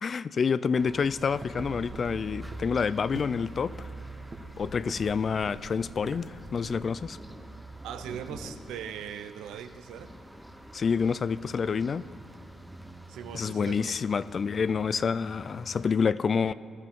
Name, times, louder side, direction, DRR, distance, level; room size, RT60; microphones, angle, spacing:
voice 1, 0.0-3.9 4.6-7.2 10.7-12.1 13.3-16.5, left 6 dB, 45° left, 17 dB, 0.3 m, -28 dB
sound 1, 0.7-15.9, right 1 dB, 5° right, 0.9 m, -46 dB
sound 2, 1.0-6.9, right 2 dB, 35° right, 1.3 m, -45 dB
voice 2, 7.8-10.1 13.1-14.0, right 9 dB, 90° right, 10 dB, 0.6 m, -40 dB
19.5 x 12.5 x 3.6 m, 2.4 s
cardioid pair, 90°, 0 cm